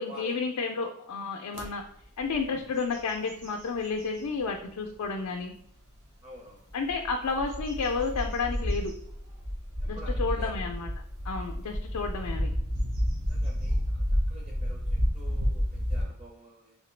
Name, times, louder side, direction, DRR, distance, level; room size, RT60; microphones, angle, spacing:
voice 1, 0.0-1.8 2.2-5.5 6.7-8.9 9.9-10.9 11.2-12.5, left 4 dB, 80° left, 3 dB, 0.4 m, -31 dB
sound 1, 1.5-1.7 2.2-2.4 2.8-4.3 4.9-5.0 6.7-16.0, equal, 60° right, 1.0 m, -30 dB
voice 2, 6.2-6.7 9.8-10.6 13.3-16.8, equal, 30° right, -2 dB, 0.5 m, -49 dB
3.2 x 2.8 x 3.1 m, 0.71 s
head